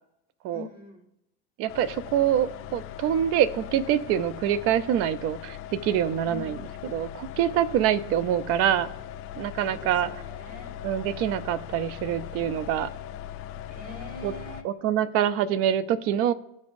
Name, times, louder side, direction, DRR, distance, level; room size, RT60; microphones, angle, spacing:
voice 1, 0.5-1.1 6.2-6.7 9.6-10.8 13.7-14.7, left 2 dB, 30° right, 4 dB, 1.6 m, -44 dB
voice 2, 1.6-6.6 6.8-8.9 9.4-10.1 10.8-12.9 14.2-14.3 14.6-16.3, right 10 dB, 50° right, 16 dB, 0.6 m, -25 dB
sound 1, 1.7-14.6, left 11 dB, 45° left, 0.7 m, -40 dB
14.5 x 5.3 x 2.6 m, 0.87 s
supercardioid pair, 125°, 30 cm